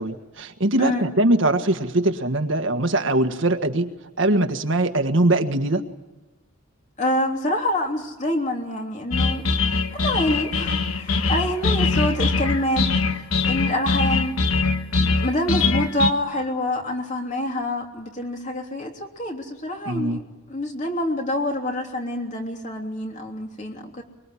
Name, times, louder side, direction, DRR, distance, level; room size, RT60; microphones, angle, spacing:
voice 1, 0.0-3.9 4.2-5.8 19.8-20.2, right 1 dB, 65° right, 6 dB, 1.6 m, -21 dB
voice 2, 7.0-9.5 9.9-12.9 13.4-14.4 15.0-20.2 20.5-24.0, left 1 dB, 35° left, 2 dB, 3.3 m, -26 dB
sound 1, 9.1-16.1, left 3 dB, 90° left, 1.4 m, -22 dB
23.5 x 22.5 x 10.0 m, 1.1 s
head